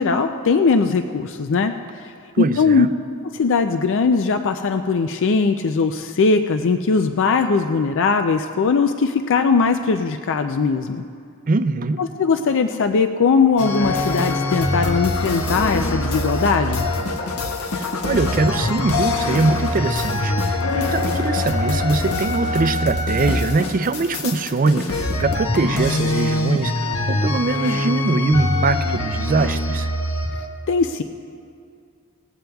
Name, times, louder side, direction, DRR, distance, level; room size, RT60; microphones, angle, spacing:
voice 1, 0.0-1.7 2.0-2.1 2.4-2.9 3.3-11.0 12.0-16.9 30.7-31.0, left 4 dB, 60° left, 7 dB, 0.4 m, -19 dB
voice 2, 2.3-2.9 11.5-12.0 17.7-29.9, right 3 dB, 40° right, 11 dB, 0.4 m, -22 dB
sound 1, 13.6-30.5, left 2 dB, 75° left, 1.3 m, -23 dB
19.5 x 15.5 x 2.3 m, 2.3 s
head